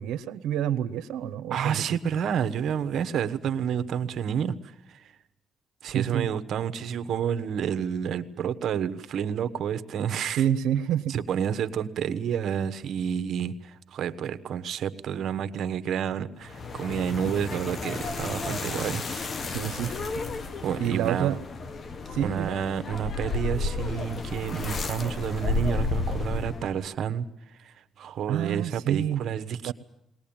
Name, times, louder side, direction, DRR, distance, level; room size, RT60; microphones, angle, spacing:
voice 1, 0.0-1.8 5.9-6.3 10.4-11.1 19.5-20.0 20.8-21.4 22.1-22.6 28.3-29.2 29.6-29.7, right 10 dB, 85° right, 14 dB, 1.0 m, -28 dB
voice 2, 1.5-5.1 5.8-10.4 11.1-19.3 20.6-21.3 22.2-27.3 27.6-29.7, right 8 dB, 65° right, 10 dB, 1.2 m, -30 dB
sound 1, 16.4-26.8, left 3 dB, 45° left, 1.6 m, -32 dB
21.0 x 19.0 x 8.9 m, 0.78 s
cardioid pair, 90°, 0 cm